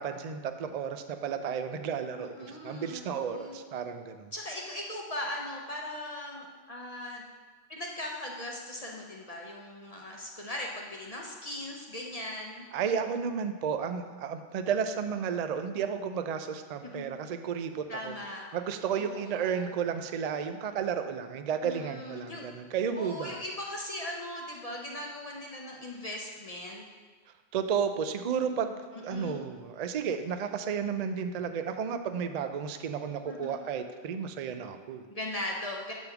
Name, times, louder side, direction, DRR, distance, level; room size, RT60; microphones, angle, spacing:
voice 1, 0.0-4.3 12.7-18.2 18.5-23.4 27.5-35.1, right 7 dB, 75° right, 8 dB, 0.3 m, -32 dB
voice 2, 2.1-3.6 4.3-7.2 7.7-12.7 16.8-17.1 17.9-18.4 18.9-19.7 21.6-22.4 22.9-26.8 28.9-29.4 33.2-33.6 35.1-35.9, left 1 dB, 40° left, -1 dB, 0.7 m, -39 dB
8.3 x 3.5 x 5.8 m, 1.5 s
omnidirectional pair, 1.3 m